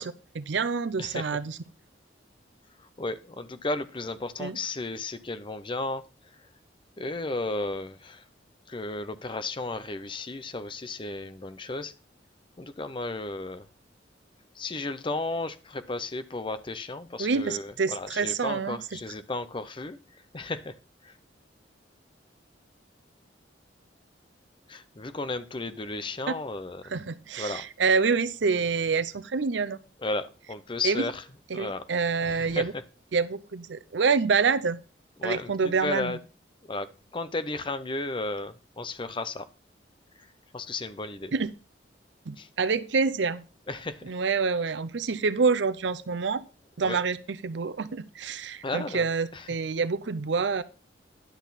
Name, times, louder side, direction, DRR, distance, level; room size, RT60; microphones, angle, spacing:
voice 1, 0.0-1.6 4.4-4.6 17.2-19.0 26.9-29.8 30.8-31.1 31.5-32.7 33.1-34.8 35.2-36.2 41.3-41.5 42.3-43.4 44.0-46.4 46.8-50.6, right 5 dB, 70° right, 13 dB, 0.6 m, -27 dB
voice 2, 3.0-6.0 7.0-8.2 8.7-11.9 12.6-13.6 14.6-20.0 20.3-20.7 21.0-21.1 24.7-26.8 27.4-27.6 30.0-31.2 31.5-31.8 32.2-32.7 35.2-36.2 36.7-36.9 37.1-39.5 40.5-41.3 42.4-42.5 43.7-44.0 46.8-47.0 48.6-49.1 49.3-49.5, left 2 dB, 25° left, 12 dB, 0.6 m, -34 dB
10.5 x 6.3 x 4.0 m, 0.34 s
head